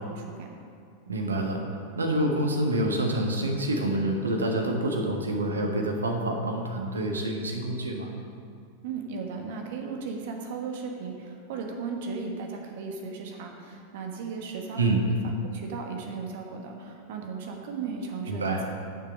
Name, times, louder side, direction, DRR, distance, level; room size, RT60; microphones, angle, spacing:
voice 1, 0.1-0.5 8.8-18.7, right 5 dB, 50° right, 2 dB, 1.3 m, -36 dB
voice 2, 1.1-1.6 1.9-8.1 14.8-15.0 18.3-18.6, right 1 dB, 75° right, 2 dB, 1.4 m, -27 dB
11.0 x 6.8 x 5.2 m, 2.4 s
figure-of-eight pair, 90°, 0 cm